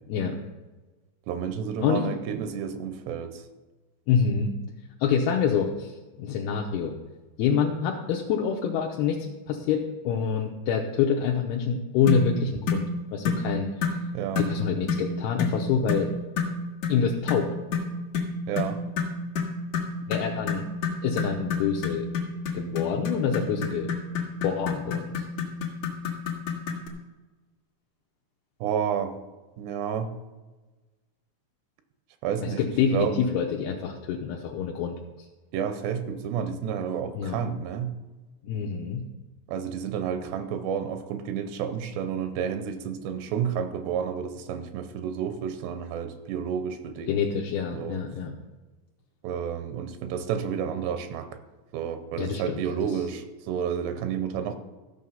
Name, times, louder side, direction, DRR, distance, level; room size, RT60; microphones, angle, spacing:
voice 1, 1.3-3.4 14.1-14.5 18.5-18.8 28.6-29.1 29.6-30.1 32.2-32.6 32.9-33.2 35.5-37.9 39.5-47.2 47.7-48.0 49.2-51.3 51.7-54.5, right 8 dB, 85° right, 9 dB, 2.8 m, -30 dB
voice 2, 4.1-4.5 5.0-7.0 7.4-12.8 13.1-13.7 14.4-16.1 16.9-17.5 20.1-20.7 21.0-22.1 22.5-23.9 24.4-25.2 32.4-35.3 37.1-37.4 38.4-39.0 47.1-48.4 52.2-53.0, left 6 dB, 80° left, 1 dB, 2.5 m, -26 dB
sound 1, 12.1-12.3 12.7-12.9 13.2-13.5 13.8-14.0 14.4-14.6 14.9-15.1 15.4-15.6 15.9-16.1 16.4-16.6 16.8-17.0 17.3-26.9, left 5 dB, 60° left, 1.8 m, -29 dB
14.0 x 6.4 x 5.5 m, 1.2 s
omnidirectional pair, 5.0 m